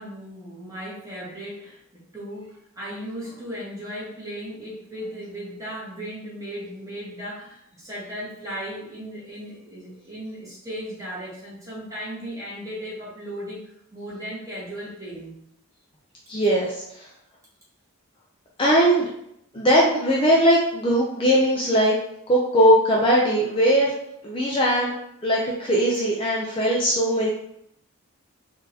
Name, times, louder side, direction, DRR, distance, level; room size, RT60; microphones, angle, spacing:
voice 1, 0.0-15.4, equal, 15° right, -8 dB, 1.3 m, -36 dB
voice 2, 16.3-16.7 18.6-19.1 19.5-22.0 22.3-23.9 24.2-24.9 25.2-27.3, equal, 25° left, -4 dB, 0.4 m, -19 dB
3.8 x 2.6 x 2.8 m, 0.74 s
head